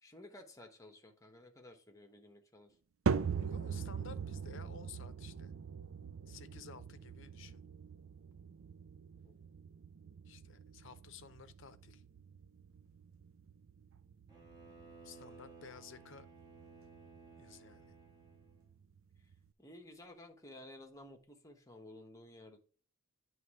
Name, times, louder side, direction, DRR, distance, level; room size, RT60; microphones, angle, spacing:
voice 1, 0.0-2.8 3.3-3.5 9.2-9.3 19.2-19.3 19.6-22.6, left 1 dB, 15° left, 1.0 m, -55 dB
sound 1, 3.1-19.5, right 6 dB, 65° right, 0.4 m, -42 dB
voice 2, 3.4-5.5 6.3-7.6 10.3-12.0 15.0-16.3 17.4-18.0, left 5 dB, 60° left, 0.6 m, -54 dB
Bowed string instrument, 14.3-18.7, right 4 dB, 20° right, 1.6 m, -57 dB
9.4 x 3.2 x 4.7 m
head